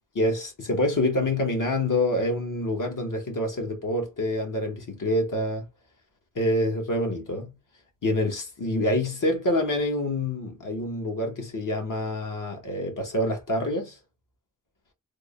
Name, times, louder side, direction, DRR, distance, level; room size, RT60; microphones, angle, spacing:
voice 1, 0.1-5.6 6.3-7.5 8.0-14.0, left 1 dB, 65° left, 1.3 m, -26 dB
3.6 x 2.2 x 3.6 m
wide cardioid pair, 100°, 35 cm